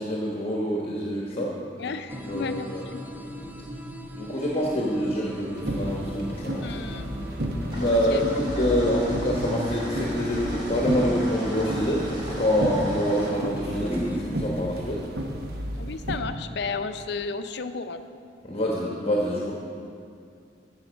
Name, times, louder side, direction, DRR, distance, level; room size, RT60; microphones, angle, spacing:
voice 1, 0.0-1.9 2.3-2.9 4.1-6.8 7.7-15.0 18.4-19.5, equal, 35° left, -3 dB, 1.1 m, -26 dB
voice 2, 1.8-3.0 6.6-7.1 7.8-8.2 15.8-18.0, left 4 dB, 70° left, 9 dB, 0.5 m, -33 dB
sound 1, 2.1-14.2, equal, 10° right, 0.6 m, -36 dB
sound 2, 5.6-16.2, right 1 dB, 60° right, 1.1 m, -33 dB
sound 3, 7.7-13.3, equal, 30° right, 2.3 m, -39 dB
13.0 x 7.1 x 5.1 m, 2.5 s
head